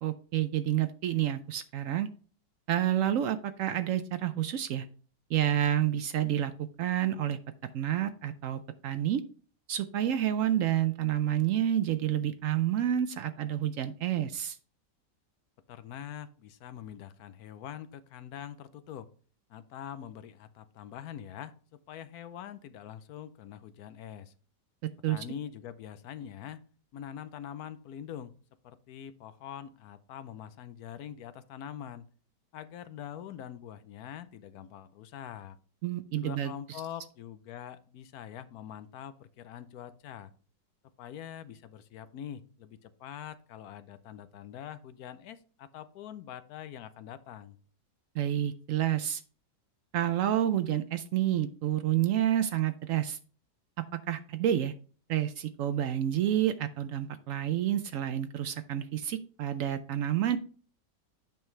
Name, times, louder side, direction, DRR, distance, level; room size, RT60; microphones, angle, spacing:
voice 1, 0.0-2.1 2.7-4.9 5.3-6.5 6.8-7.4 7.7-9.2 9.7-14.6 25.0-25.2 35.8-36.5 48.1-49.2 49.9-53.2 53.9-54.7 55.1-60.4, right 11 dB, 80° right, 11 dB, 0.7 m, -29 dB
voice 2, 15.7-19.1 19.5-24.3 25.1-26.6 26.9-28.3 28.6-32.0 32.5-35.6 36.2-40.3 41.0-47.6, left 9 dB, 70° left, 13 dB, 1.0 m, -44 dB
8.9 x 5.8 x 3.2 m, 0.41 s
omnidirectional pair, 1.9 m